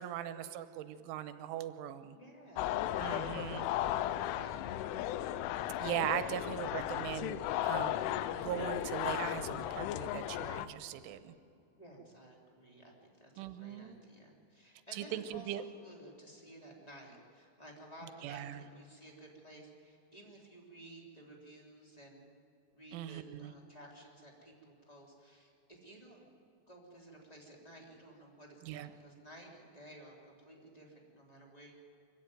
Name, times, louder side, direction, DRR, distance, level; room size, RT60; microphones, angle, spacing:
voice 1, 0.0-2.2 3.0-3.7 5.8-11.3 13.4-14.0 14.9-15.6 18.2-18.6 22.9-23.5 28.7-28.9, right 11 dB, 85° right, 12 dB, 3.3 m, -40 dB
voice 2, 2.1-4.9 11.8-22.3 22.7-26.3 26.7-31.7, right 1 dB, 10° left, -1 dB, 2.0 m, -55 dB
sound 1, 2.6-10.7, left 12 dB, 85° left, 3.1 m, -35 dB
24.0 x 14.5 x 9.3 m, 2.6 s
omnidirectional pair, 5.6 m